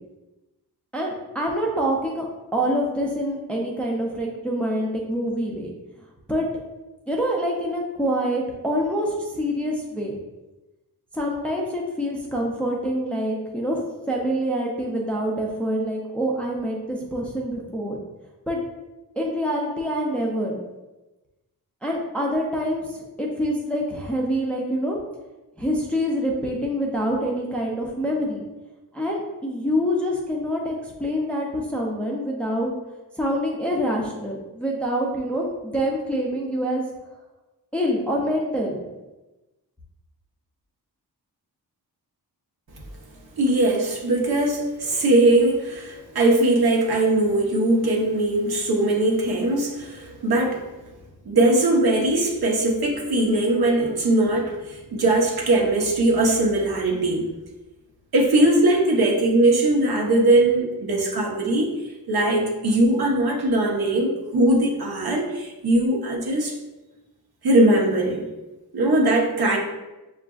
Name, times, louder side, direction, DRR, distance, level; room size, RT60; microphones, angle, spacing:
voice 1, 0.9-2.3 2.5-5.7 6.3-6.5 7.1-10.2 11.1-13.8 14.1-18.0 18.5-18.6 19.2-20.6 21.8-25.0 25.6-28.4 28.9-32.7 33.2-36.8 37.7-38.8, equal, 5° left, -2 dB, 0.4 m, -26 dB
voice 2, 43.4-50.6 51.3-57.3 58.1-61.7 62.1-66.5 67.4-68.2 68.7-69.6, right 1 dB, 70° right, -1 dB, 0.9 m, -20 dB
7.1 x 2.5 x 2.3 m, 1.1 s
wide cardioid pair, 170°, 39 cm